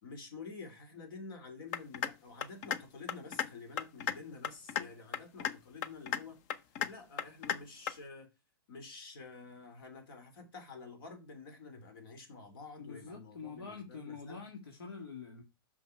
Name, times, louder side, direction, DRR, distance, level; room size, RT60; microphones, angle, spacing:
voice 1, 0.0-6.4 6.9-8.3 8.7-14.5, left 4 dB, 70° left, 3.0 m, -49 dB
sound 1, 1.7-2.1 2.4-2.8 3.1-3.5 3.8-4.1 4.4-4.8 5.1-5.5 5.8-6.2 6.5-6.9 7.2-7.6 7.9-8.0, left 9 dB, 45° left, 0.7 m, -33 dB
voice 2, 12.8-15.4, left 5 dB, 90° left, 1.9 m, -46 dB
6.0 x 5.8 x 4.6 m
hypercardioid pair, 135°, 12 cm